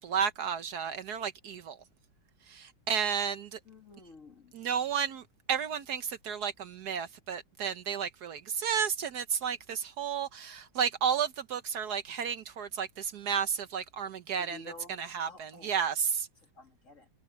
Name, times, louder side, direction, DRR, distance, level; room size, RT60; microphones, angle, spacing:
voice 1, 0.0-1.8 2.5-3.6 4.5-16.3, right 7 dB, 65° right, 1.3 m, -32 dB
voice 2, 3.7-4.5 14.4-15.0 15.2-15.7 16.6-17.1, left 3 dB, 45° left, 2.5 m, -51 dB
omnidirectional pair, 2.0 m